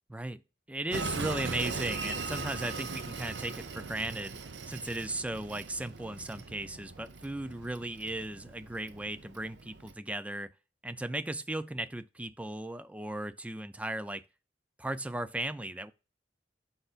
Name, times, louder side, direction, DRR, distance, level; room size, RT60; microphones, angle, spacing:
voice 1, 0.1-0.4 0.7-4.4 4.7-10.5 10.8-14.2 14.8-15.9, right 1 dB, 10° right, 0.4 m, -36 dB
Train, 0.9-9.9, right 4 dB, 75° right, 0.7 m, -40 dB
9.8 x 5.7 x 2.4 m
head